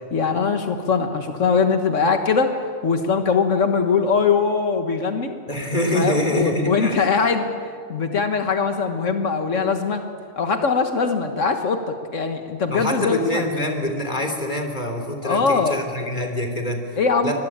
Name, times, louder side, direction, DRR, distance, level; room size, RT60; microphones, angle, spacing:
voice 1, 0.1-2.6 2.8-5.3 5.9-10.0 10.4-11.9 12.1-13.4 15.2-15.8 17.0-17.3, left 5 dB, 85° left, 6 dB, 1.7 m, -21 dB
voice 2, 5.5-7.0 12.7-17.0 17.2-17.3, left 1 dB, 35° left, 4 dB, 3.4 m, -25 dB
24.5 x 21.0 x 8.7 m, 2.2 s
omnidirectional pair, 1.3 m